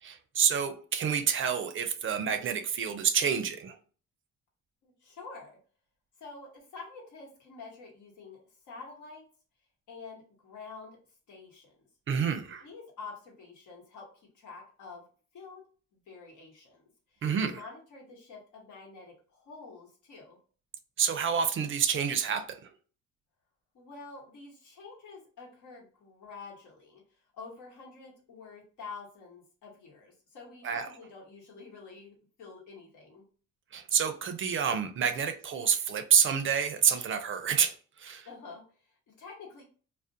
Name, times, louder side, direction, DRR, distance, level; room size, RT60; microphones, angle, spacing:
voice 1, 0.0-3.8 12.1-12.7 17.2-17.7 21.0-22.7 30.6-30.9 33.7-38.3, right 7 dB, 45° right, 0.4 m, -28 dB
voice 2, 4.8-5.6 6.2-8.4 8.7-9.2 9.9-11.0 11.3-11.9 12.6-15.0 15.3-15.6 15.9-16.8 17.1-20.4 23.7-27.0 27.3-33.2 38.2-39.6, left 4 dB, 80° left, 1.1 m, -48 dB
2.4 x 2.1 x 2.6 m
cardioid pair, 90°, 30 cm